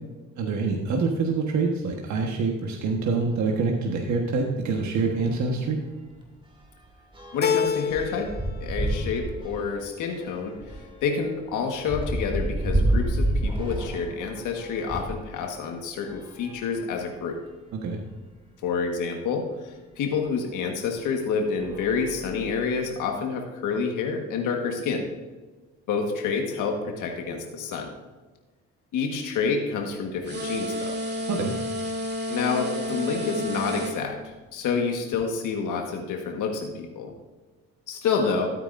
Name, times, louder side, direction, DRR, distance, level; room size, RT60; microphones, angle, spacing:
voice 1, 0.4-5.8 17.7-18.0 31.3-31.5, right 4 dB, 70° right, 1 dB, 1.4 m, -26 dB
sound 1, 4.9-5.0 5.3-5.5 5.8-15.2 16.0-17.3 18.0-18.1 18.3-18.4 20.1-20.2 20.9-21.2 21.5-22.8, right 1 dB, 15° right, 2.6 m, -30 dB
voice 2, 7.3-8.3 8.6-17.4 18.6-25.0 25.9-27.9 28.9-31.0 32.3-37.1 37.9-38.5, left 5 dB, 85° left, 2 dB, 1.6 m, -28 dB
Keyboard (musical), 7.4-8.5 8.8-9.6, left 7 dB, 35° left, 0.5 m, -28 dB
sound 2, 30.2-34.0, equal, 35° right, 2.2 m, -31 dB
13.5 x 9.1 x 2.6 m, 1.3 s
cardioid pair, 90°, 30 cm